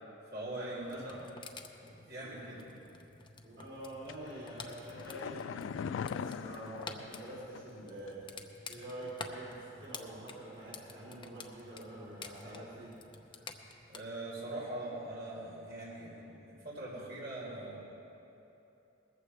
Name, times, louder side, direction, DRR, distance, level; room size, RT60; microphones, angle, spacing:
voice 1, 0.2-1.2 2.0-2.6 13.9-17.9, right 1 dB, 55° right, -6 dB, 4.2 m, -42 dB
sound 1, 0.8-14.0, left 4 dB, 25° left, 0.7 m, -50 dB
voice 2, 0.8-1.2 2.2-2.5 3.4-8.2 8.7-12.9, right 1 dB, 75° right, -9 dB, 3.6 m, -46 dB
sound 2, 4.1-7.8 8.1-8.2, left 7 dB, 80° left, 0.3 m, -41 dB
20.0 x 14.5 x 3.4 m, 2.9 s
head